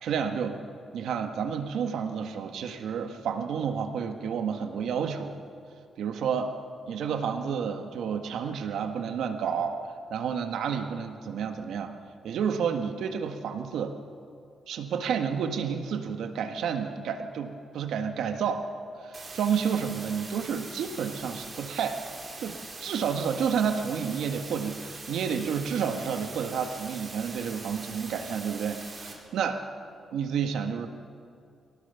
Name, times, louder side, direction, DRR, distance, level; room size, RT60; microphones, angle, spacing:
voice 1, 0.0-0.6 0.9-5.4 6.0-6.5 6.9-9.8 10.1-11.9 12.2-13.9 14.7-18.7 19.0-22.0 22.4-29.6 30.1-30.9, right 7 dB, 85° right, 6 dB, 1.7 m, -30 dB
sound 1, 19.1-29.1, right 3 dB, 30° right, 4.0 m, -42 dB
24.0 x 17.5 x 7.1 m, 2.4 s
cardioid pair, 125°, 0 cm